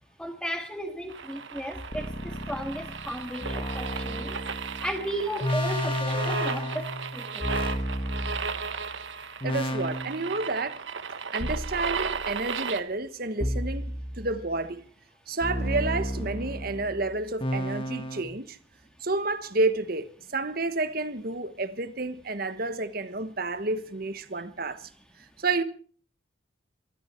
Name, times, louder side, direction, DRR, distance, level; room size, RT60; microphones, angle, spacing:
voice 1, 0.2-4.4 4.8-7.5, equal, 5° left, 1.9 m, -35 dB
sound 1, 1.1-12.8, right 5 dB, 70° right, 1.2 m, -35 dB
sound 2, 1.9-8.9 9.4-10.5 11.4-12.6 13.4-14.6 15.4-18.2, equal, 25° left, 1.7 m, -32 dB
voice 2, 9.4-10.8 11.3-14.9 15.3-18.6 19.0-24.9 25.2-25.6, right 3 dB, 50° right, 1.3 m, -30 dB
24.0 x 13.0 x 4.5 m
head